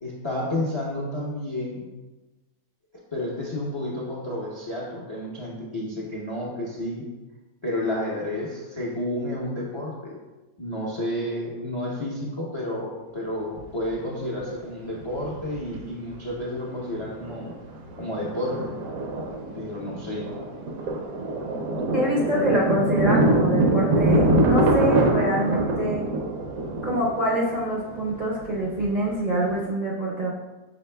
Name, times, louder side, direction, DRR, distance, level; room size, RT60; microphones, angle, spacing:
voice 1, 0.0-1.9 3.1-7.1 7.6-10.2 10.6-17.5 18.0-18.7 19.5-20.3, left 1 dB, 35° left, -4 dB, 0.4 m, -31 dB
Thunder, 13.6-13.7 15.0-15.8 16.1-16.2 16.6-16.9 17.2-29.6, right 1 dB, 70° right, 1.0 m, -24 dB
voice 2, 21.9-26.0 26.8-30.3, right 1 dB, 45° right, -6 dB, 0.6 m, -25 dB
5.9 x 4.0 x 2.2 m, 1.2 s
omnidirectional pair, 1.6 m